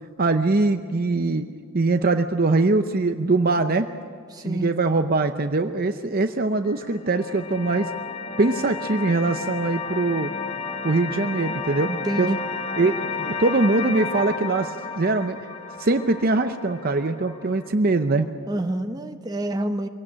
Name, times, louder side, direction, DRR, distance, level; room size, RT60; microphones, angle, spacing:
voice 1, 0.2-1.5 1.7-3.9 4.4-7.9 8.4-10.3 10.8-11.9 12.2-12.4 12.8-15.4 15.8-18.3, right 3 dB, 40° right, 7 dB, 0.7 m, -22 dB
voice 2, 4.3-4.7 11.9-12.4 12.9-13.1 18.5-19.9, right 1 dB, 15° right, 6 dB, 1.0 m, -28 dB
sound 1, 6.7-17.7, left 4 dB, 30° left, 1.2 m, -32 dB
24.0 x 17.5 x 8.7 m, 2.2 s
head